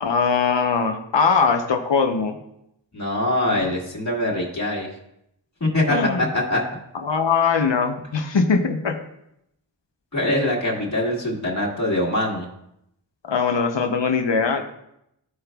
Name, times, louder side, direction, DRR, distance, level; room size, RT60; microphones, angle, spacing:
voice 1, 0.0-2.4 3.5-3.7 5.9-6.3 7.0-9.0 13.2-14.6, left 5 dB, 70° left, 5 dB, 0.8 m, -21 dB
voice 2, 2.9-4.9 5.6-6.6 10.1-12.5, left 1 dB, 35° left, -2 dB, 1.7 m, -23 dB
14.5 x 4.9 x 2.3 m, 0.80 s
wide cardioid pair, 60°, 45 cm